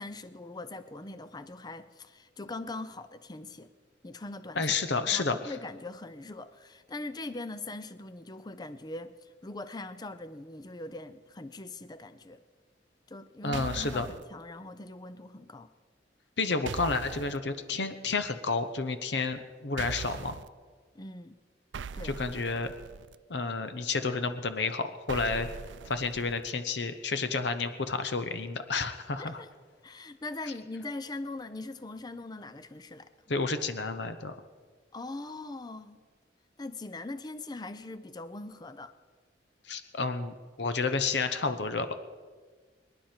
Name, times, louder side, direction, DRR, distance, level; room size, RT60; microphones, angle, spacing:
voice 1, 0.0-3.7 4.0-12.4 13.1-15.7 20.9-21.4 21.9-22.2 29.2-29.5 29.8-33.1 34.9-36.0 36.6-38.9, left 2 dB, 25° left, 12 dB, 0.6 m, -41 dB
voice 2, 4.6-5.5 13.4-14.1 16.4-20.4 22.0-22.7 23.3-25.5 25.9-29.4 33.3-34.3 39.7-41.9, left 4 dB, 70° left, 10 dB, 0.9 m, -30 dB
sound 1, 13.5-14.2 16.7-17.4 19.8-20.5 21.7-23.2 25.1-26.5, right 6 dB, 90° right, 0.4 m, -41 dB
24.5 x 11.0 x 4.5 m, 1.5 s
head